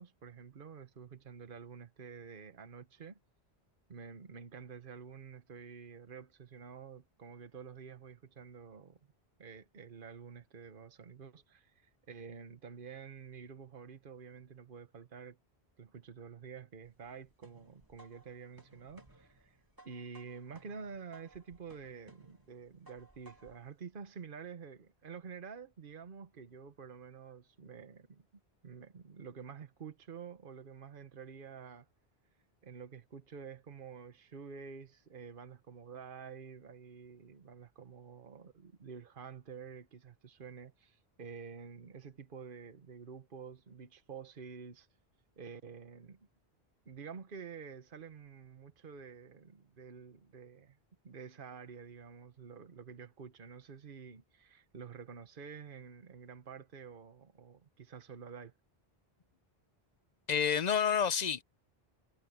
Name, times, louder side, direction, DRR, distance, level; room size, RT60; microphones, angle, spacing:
voice 1, 0.0-3.2 3.9-9.0 9.4-15.4 15.8-19.6 19.8-28.3 28.6-31.9 32.6-44.9 45.4-46.3 46.9-50.8 51.0-58.5, right 6 dB, 55° right, 1.3 m, -49 dB
sound 1, 16.8-23.7, right 2 dB, 20° right, 1.9 m, -61 dB
voice 2, 60.3-61.4, left 7 dB, 50° left, 0.6 m, -29 dB
omnidirectional pair, 1.1 m